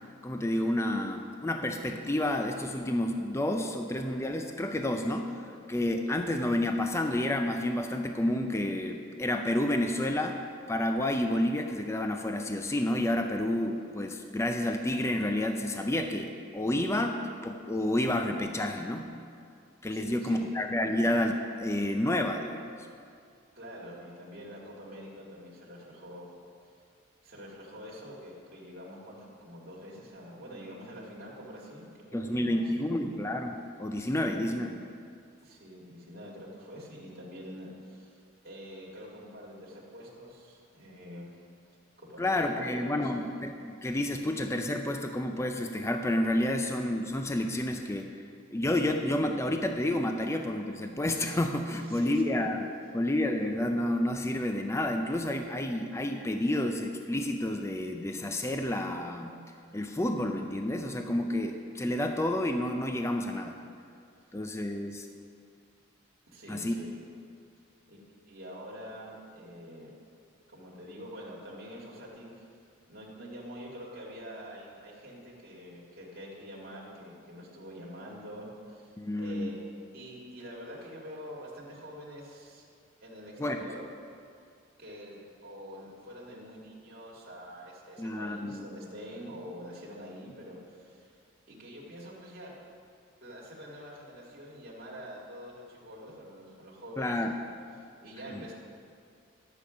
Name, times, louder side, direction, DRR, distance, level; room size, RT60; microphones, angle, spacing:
voice 1, 0.2-5.4 5.7-10.4 10.7-19.1 19.8-22.9 32.1-34.7 42.2-48.1 48.5-52.7 52.9-59.4 59.7-63.6 64.3-65.1 66.5-66.7 79.0-79.5 83.4-83.6 88.0-88.6 97.0-97.3 98.3-98.4, left 1 dB, 15° left, 5 dB, 0.4 m, -30 dB
voice 2, 19.9-20.5 23.5-26.3 27.2-33.2 34.1-34.8 35.4-41.3 42.0-43.2 51.7-52.3 66.3-67.0 67.9-69.9 70.5-72.5 72.9-78.9 79.2-79.6 79.9-82.7 83.0-83.9 84.8-91.1 91.5-92.6 93.2-97.5 97.8-98.5, equal, 45° right, -5 dB, 2.2 m, -46 dB
11.5 x 8.4 x 5.0 m, 2.3 s
head